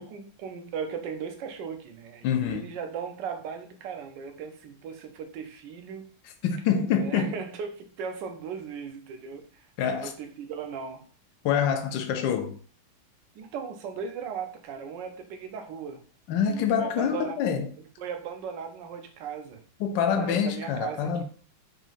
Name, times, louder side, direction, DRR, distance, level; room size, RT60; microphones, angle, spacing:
voice 1, 0.0-6.1 6.9-11.1 13.3-16.0 16.5-17.4 18.0-19.6 20.2-21.2, right 6 dB, 65° right, 1.2 m, -37 dB
voice 2, 2.2-2.6 6.4-7.3 9.8-10.1 11.4-12.6 16.3-17.7 19.8-21.2, left 7 dB, 70° left, 1.1 m, -26 dB
5.0 x 3.8 x 2.5 m
omnidirectional pair, 2.3 m